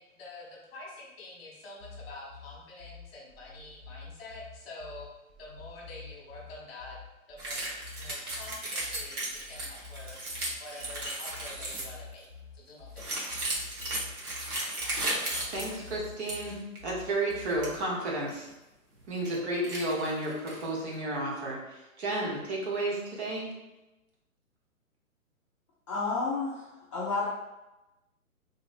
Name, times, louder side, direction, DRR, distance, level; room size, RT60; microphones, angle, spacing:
voice 1, 0.0-5.1 5.4-7.0 7.3-7.6 8.0-10.2 10.6-12.3 12.5-13.3, left 2 dB, 40° left, -3 dB, 1.1 m, -47 dB
sound 1, 1.8-17.8, left 4 dB, 25° right, 0.8 m, -48 dB
sound 2, 7.4-12.0 13.0-16.5 16.8-16.9 17.3-17.7 18.3-18.4 19.0-19.4 19.6-20.7, right 1 dB, 80° right, 1.2 m, -35 dB
voice 2, 15.5-18.5 19.1-23.5, right 1 dB, 50° right, -3 dB, 1.0 m, -32 dB
voice 3, 25.9-27.3, left 4 dB, 25° left, -9 dB, 0.4 m, -31 dB
3.0 x 2.8 x 2.5 m, 1.0 s
hypercardioid pair, 135°, 43 cm